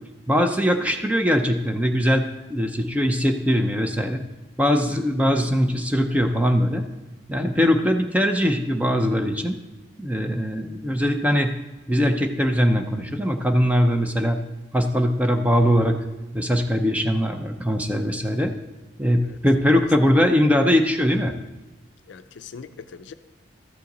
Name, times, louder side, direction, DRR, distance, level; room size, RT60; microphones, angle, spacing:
voice 1, 0.3-2.2 2.5-4.2 4.6-6.8 7.3-9.6 10.0-11.5 11.9-14.4 14.7-16.0 16.3-18.5 19.0-21.3, equal, 5° right, 5 dB, 0.5 m, -21 dB
voice 2, 22.1-23.1, left 6 dB, 65° left, 11 dB, 0.4 m, -41 dB
13.5 x 5.7 x 3.9 m, 1.1 s
head